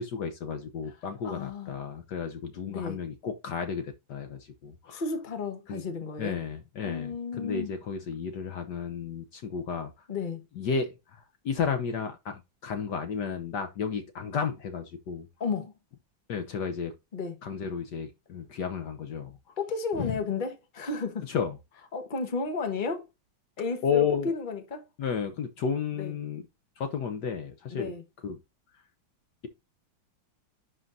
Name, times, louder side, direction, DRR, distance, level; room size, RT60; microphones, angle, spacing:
voice 1, 0.0-5.0 5.7-5.8 6.2-9.9 10.6-15.3 16.3-16.9 17.4-19.4 20.0-20.2 21.3-21.6 23.8-24.3 25.0-26.4 26.8-27.9 28.2-28.4, left 6 dB, 65° left, 1.4 m, -32 dB
voice 2, 1.2-1.8 2.7-3.0 4.9-6.4 6.8-7.7 10.1-10.4 15.4-15.7 17.1-17.4 19.6-21.2 21.9-23.1 23.6-24.8 26.0-26.1 27.7-28.0, left 4 dB, 30° left, 1.3 m, -33 dB
11.0 x 3.8 x 2.6 m
omnidirectional pair, 2.1 m